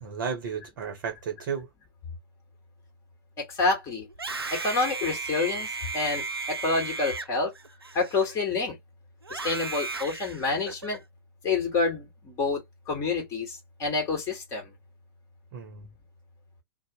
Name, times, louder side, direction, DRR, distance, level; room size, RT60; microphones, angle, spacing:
voice 1, 0.0-1.7 15.5-15.9, right 6 dB, 50° right, 0.7 m, -33 dB
voice 2, 3.4-4.1 4.5-7.5 7.9-8.8 9.3-11.0 11.4-14.7, left 3 dB, 25° left, 1.4 m, -28 dB
Screaming, 4.1-8.6 9.2-11.0, right 4 dB, 90° right, 0.4 m, -35 dB
2.6 x 2.0 x 2.8 m
figure-of-eight pair, 105°, 12 cm